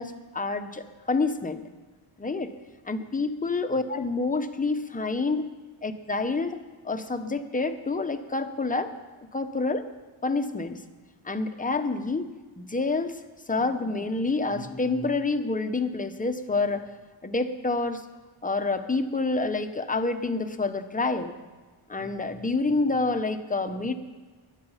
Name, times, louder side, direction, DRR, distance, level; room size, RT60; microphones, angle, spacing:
voice 1, 0.0-1.6 2.2-2.5 2.9-5.4 5.8-8.9 9.3-9.9 10.2-10.8 11.2-12.3 12.6-13.2 13.5-16.8 17.2-18.0 18.4-21.3 21.9-23.9, left 3 dB, 15° left, 8 dB, 0.8 m, -28 dB
21.5 x 9.1 x 5.7 m, 1.3 s
wide cardioid pair, 140°, 49 cm